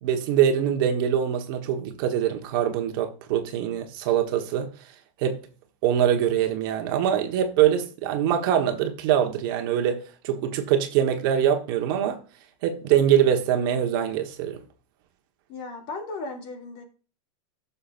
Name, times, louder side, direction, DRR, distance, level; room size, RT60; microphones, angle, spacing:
voice 1, 0.0-4.7 5.2-5.4 5.8-12.2 12.6-14.6, right 9 dB, 45° right, 1.3 m, -23 dB
voice 2, 15.5-16.8, left 3 dB, 35° left, 2.7 m, -36 dB
14.5 x 6.8 x 2.5 m
supercardioid pair, 170°, 17 cm